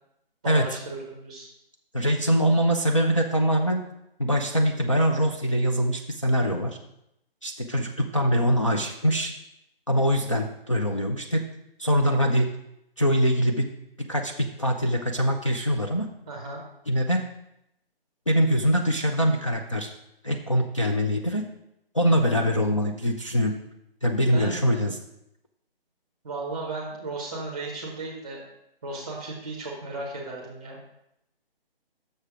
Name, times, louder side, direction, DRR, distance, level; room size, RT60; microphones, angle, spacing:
voice 1, 0.4-1.5 16.3-16.6 24.3-24.6 26.2-28.4 28.8-30.8, right 2 dB, 5° right, -3 dB, 0.7 m, -35 dB
voice 2, 1.9-3.8 4.2-6.8 7.4-9.3 9.9-11.4 11.8-12.6 13.0-13.7 14.0-16.1 16.9-17.2 18.3-19.9 20.2-21.4 21.9-23.6 24.0-25.0, equal, 35° left, 0 dB, 0.4 m, -23 dB
6.6 x 6.5 x 4.9 m, 0.80 s
hypercardioid pair, 175°, 30 cm